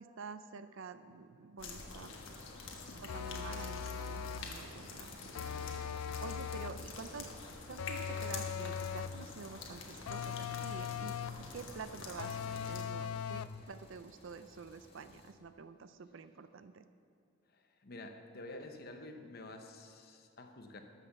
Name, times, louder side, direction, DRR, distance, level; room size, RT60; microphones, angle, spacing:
voice 1, 0.0-2.4 3.0-5.9 6.2-7.3 7.7-11.2 11.5-16.8, right 5 dB, 60° right, 11 dB, 0.5 m, -49 dB
sound 1, 1.6-12.8, left 3 dB, 65° left, 1.4 m, -47 dB
sound 2, 2.4-15.3, left 1 dB, 25° left, 1.3 m, -59 dB
sound 3, 3.1-4.6 5.3-6.9 7.8-9.2 10.1-11.5 12.2-13.6, left 7 dB, 85° left, 0.4 m, -40 dB
voice 2, 17.5-20.8, left 2 dB, 45° left, 5 dB, 0.9 m, -50 dB
12.5 x 5.9 x 6.9 m, 2.4 s
head